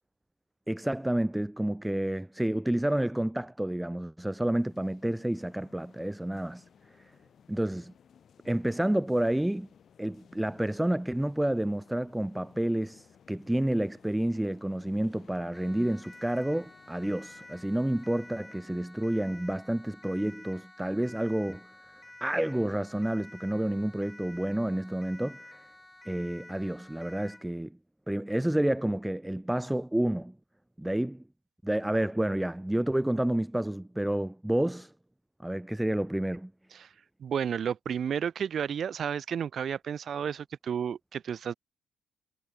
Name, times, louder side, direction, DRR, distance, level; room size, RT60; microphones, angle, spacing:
voice 1, 0.7-6.6 7.5-7.9 8.4-9.7 10.0-21.7 22.2-25.6 26.1-27.7 28.1-30.3 30.8-31.2 31.6-34.9 35.4-36.5, right 1 dB, 5° right, 0.6 m, -29 dB
sound 1, 4.5-18.4, left 8 dB, 55° left, 2.4 m, -59 dB
Siren, 15.5-27.5, left 1 dB, 10° left, 3.0 m, -51 dB
voice 2, 37.2-41.5, right 8 dB, 55° right, 0.5 m, -32 dB
cardioid pair, 90°, 0 cm